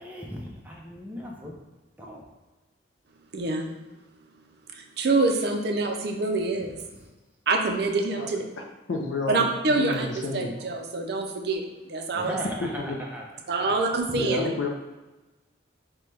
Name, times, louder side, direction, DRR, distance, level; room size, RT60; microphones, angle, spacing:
voice 1, 0.0-1.6 2.0-2.2 7.0-7.1 12.1-13.2 13.5-13.8 14.1-14.2, equal, 10° right, -2 dB, 0.6 m, -37 dB
voice 2, 3.3-3.7 4.7-6.8 7.5-8.4 9.3-10.1 10.3-11.6 11.9-12.4 13.5-14.5, right 3 dB, 55° right, 3 dB, 0.5 m, -26 dB
voice 3, 8.9-10.5 12.9-13.0 14.1-14.7, left 3 dB, 75° left, 1 dB, 0.4 m, -30 dB
5.5 x 2.2 x 3.2 m, 1.1 s
head